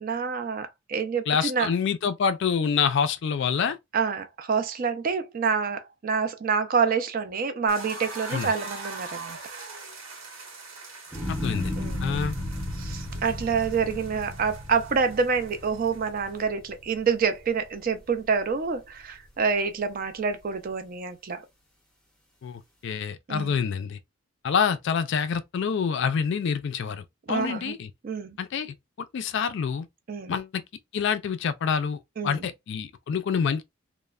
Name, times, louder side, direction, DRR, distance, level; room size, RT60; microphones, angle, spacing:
voice 1, 0.0-1.7 3.9-9.4 11.8-12.2 12.8-21.4 23.3-23.6 27.3-27.7 28.0-28.4 30.1-30.4 32.2-32.5, right 5 dB, 40° right, 0.4 m, -27 dB
voice 2, 1.3-3.8 8.3-8.5 11.3-11.8 12.0-12.4 22.4-24.0 24.4-27.9 28.4-28.7 29.1-29.9 30.3-30.6 30.9-33.6, left 6 dB, 55° left, 0.3 m, -27 dB
sound 1, 7.7-16.4, right 3 dB, 65° right, 1.0 m, -42 dB
sound 2, 11.1-17.4 17.9-18.5, left 1 dB, 5° left, 0.6 m, -34 dB
3.1 x 2.0 x 2.3 m
head